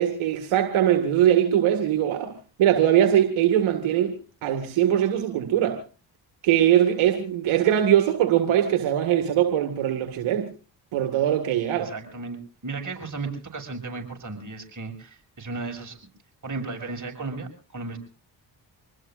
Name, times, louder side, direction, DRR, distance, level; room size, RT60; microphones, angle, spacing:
voice 1, 0.0-2.3 2.6-4.2 4.4-5.8 6.4-10.5 10.9-11.9, right 11 dB, 80° right, 5 dB, 1.9 m, -21 dB
voice 2, 11.8-12.4 12.6-16.0 16.4-18.0, right 3 dB, 40° right, 2 dB, 7.0 m, -34 dB
26.5 x 20.0 x 2.5 m, 0.37 s
supercardioid pair, 45°, 48 cm